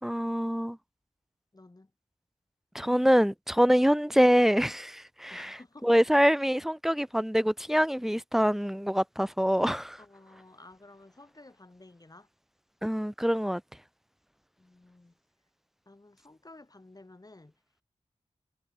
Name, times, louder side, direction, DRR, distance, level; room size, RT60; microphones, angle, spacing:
voice 1, 0.0-0.8 2.7-5.6 5.8-10.0 12.8-13.6, equal, 5° right, 0.4 m, -25 dB
voice 2, 1.5-1.9 5.3-5.9 10.0-12.3 14.6-15.1 15.9-17.5, left 2 dB, 30° left, 2.1 m, -53 dB
cardioid pair, 45°, 13 cm